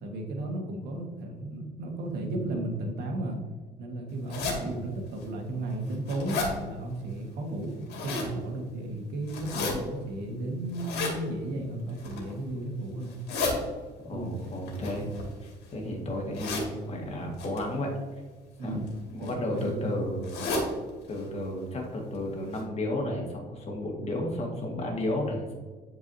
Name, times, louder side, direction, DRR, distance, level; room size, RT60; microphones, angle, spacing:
voice 1, 0.0-3.4 3.8-7.8 8.0-13.1 14.1-14.5 18.6-18.9 19.2-19.9, right 1 dB, 75° right, 2 dB, 1.6 m, -34 dB
sound 1, 4.3-4.6 5.2-5.3 5.7-6.5 7.6-8.3 9.3-9.7 10.7-11.2 11.9-12.3 13.0-13.5 14.7-15.7 16.3-16.7 17.4-17.6 18.6-18.9 19.2-19.3 19.6-19.7 20.2-20.7 21.1-21.2 21.5-21.6 22.1-22.2 22.5-22.6, left 3 dB, 75° left, 2.2 m, -32 dB
voice 2, 14.0-15.1 15.4-17.9 18.6-18.8 19.1-20.3 21.1-25.5, left 1 dB, 40° left, 0 dB, 1.8 m, -33 dB
10.5 x 4.7 x 2.8 m, 1.4 s
cardioid pair, 110°, 17 cm